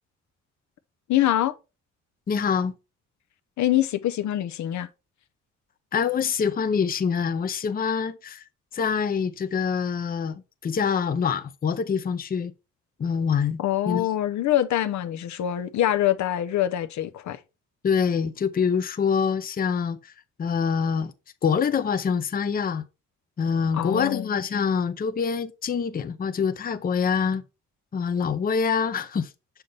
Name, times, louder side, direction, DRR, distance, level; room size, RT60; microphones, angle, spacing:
voice 1, 1.1-1.5 3.6-4.9 13.6-17.4 23.7-24.3, left 12 dB, 70° left, 0.7 m, -24 dB
voice 2, 2.3-2.7 5.9-8.4 8.7-12.5 13.0-13.6 13.9-14.1 17.8-20.1 20.4-21.1 21.4-22.8 23.4-27.4 27.9-29.3, left 6 dB, 30° left, 0.6 m, -25 dB
6.6 x 5.7 x 3.4 m
cardioid pair, 90°, 30 cm